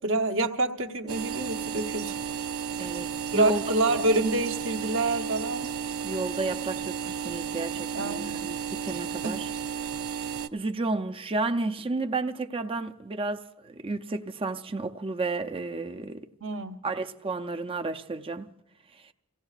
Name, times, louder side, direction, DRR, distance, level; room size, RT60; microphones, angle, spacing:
voice 1, 0.0-2.2 2.8-3.0 3.3-5.7 7.9-8.4 9.2-9.4 16.4-16.8, right 2 dB, 65° right, 0.9 m, -27 dB
sound 1, 1.1-10.5, right 7 dB, 85° right, 0.6 m, -33 dB
voice 2, 2.8-3.6 6.0-9.5 10.5-16.3 16.8-18.5 19.0-19.1, right 2 dB, 25° right, 0.5 m, -32 dB
28.5 x 16.5 x 2.4 m
head